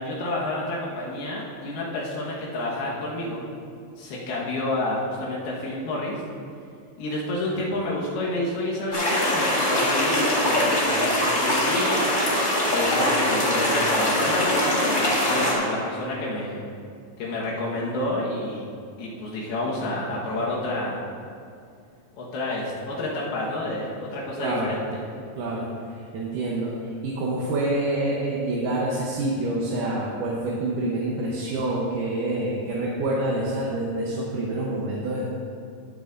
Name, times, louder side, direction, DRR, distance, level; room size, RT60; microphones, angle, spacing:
voice 1, 0.0-3.5 4.0-6.2 7.0-12.0 12.7-16.6 17.2-18.7 19.0-21.0 22.1-24.8, left 1 dB, 80° left, -5 dB, 3.3 m, -29 dB
sound 1, 8.9-15.5, left 1 dB, 35° left, 1.2 m, -22 dB
voice 2, 24.4-24.7 25.4-25.7 26.1-26.8 27.0-35.2, right 2 dB, 70° right, -4 dB, 2.3 m, -27 dB
16.5 x 8.7 x 2.6 m, 2.3 s
omnidirectional pair, 4.4 m